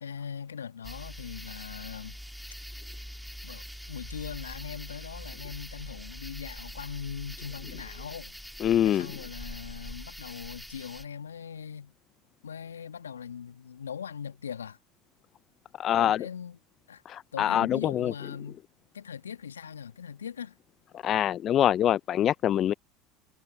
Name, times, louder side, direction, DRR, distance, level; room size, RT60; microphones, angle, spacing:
voice 1, 0.0-2.2 3.4-8.4 8.8-11.9 12.4-14.8 16.0-16.6 16.9-18.6 18.9-20.6, left 7 dB, 80° left, 1.5 m, -40 dB
sound 1, 0.8-11.0, equal, ahead, 3.3 m, -43 dB
voice 2, 8.6-9.1 15.8-16.3 17.1-18.1 20.9-22.7, left 11 dB, 40° left, 0.5 m, -25 dB
figure-of-eight pair, 75°, 0 cm